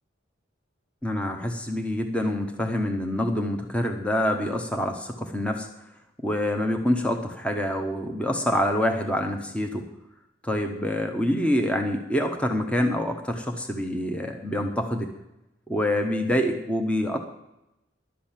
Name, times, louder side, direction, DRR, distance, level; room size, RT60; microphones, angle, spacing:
voice 1, 1.0-5.7 6.2-9.8 10.4-15.1 15.7-17.2, left 1 dB, 5° left, 3 dB, 1.0 m, -26 dB
12.0 x 6.3 x 8.8 m, 0.88 s
head